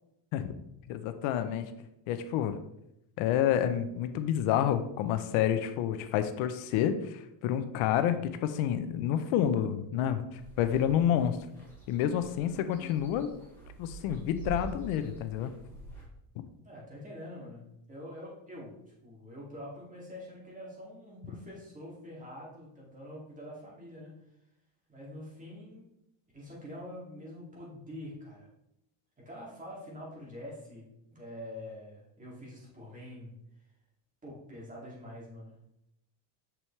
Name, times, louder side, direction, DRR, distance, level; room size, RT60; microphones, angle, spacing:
voice 1, 0.9-1.7 2.1-2.6 3.2-11.4 11.9-13.3 13.8-15.5, left 10 dB, 90° left, 10 dB, 0.7 m, -29 dB
sound 1, 10.3-16.0, right 3 dB, 5° left, 2.5 m, -46 dB
voice 2, 16.6-24.1 24.9-25.9 26.3-28.5 29.2-33.4 34.2-35.6, left 1 dB, 15° right, -5 dB, 2.3 m, -45 dB
6.3 x 6.0 x 3.2 m, 0.83 s
cardioid pair, 155°, 48 cm